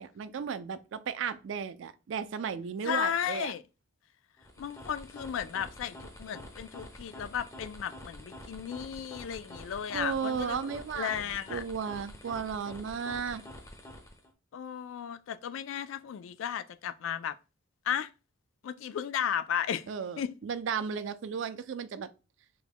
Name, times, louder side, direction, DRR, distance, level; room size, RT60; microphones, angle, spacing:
voice 1, 0.0-3.5 9.9-11.2 11.5-13.4 19.9-22.1, right 6 dB, 65° right, 0.3 m, -34 dB
voice 2, 2.8-3.6 4.6-10.7 10.9-11.6 14.5-17.4 17.8-18.1 18.6-19.9 20.2-20.3, left 9 dB, 75° left, 0.3 m, -34 dB
sound 1, 4.4-14.3, left 1 dB, 15° left, 0.5 m, -47 dB
3.5 x 2.1 x 3.4 m
head